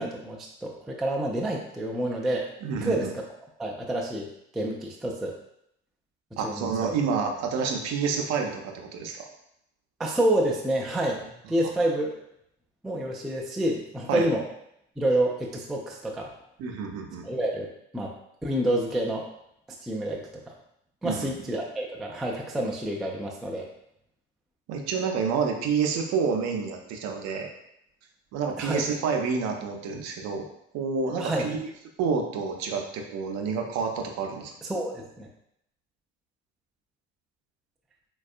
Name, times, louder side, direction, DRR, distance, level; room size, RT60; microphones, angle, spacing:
voice 1, 0.0-2.5 2.8-3.2 3.6-4.3 4.5-5.4 6.4-7.1 10.0-12.1 12.8-14.5 15.0-16.3 17.2-18.1 18.4-19.3 19.8-20.4 21.0-23.7 28.6-28.8 31.2-31.5 34.6-35.3, right 1 dB, ahead, -1 dB, 0.3 m, -28 dB
voice 2, 2.6-3.1 6.4-9.3 14.1-14.3 16.6-17.3 21.0-21.3 24.7-27.5 28.3-30.4 30.7-31.7 32.0-34.5, right 5 dB, 50° right, 3 dB, 0.6 m, -28 dB
4.0 x 2.3 x 2.4 m, 0.76 s
figure-of-eight pair, 50°, 35 cm